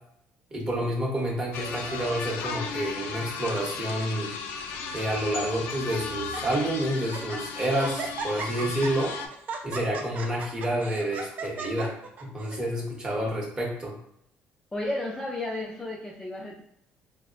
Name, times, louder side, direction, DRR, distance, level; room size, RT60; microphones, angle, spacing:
voice 1, 0.5-4.3 4.9-9.1 9.6-11.9 12.2-13.9, right 1 dB, 20° right, -1 dB, 0.8 m, -29 dB
sound 1, 1.5-9.3, left 5 dB, 85° left, 0.3 m, -36 dB
Laughter, 1.5-2.4 3.1-3.4 3.7-3.8 4.6-5.2 5.7-5.8 6.2-6.6 7.0-7.4 7.8-12.6, right 4 dB, 45° right, 0.4 m, -38 dB
voice 2, 14.7-16.6, left 1 dB, 15° left, -3 dB, 0.4 m, -33 dB
3.5 x 2.1 x 2.4 m, 0.72 s
cardioid pair, 135°, 4 cm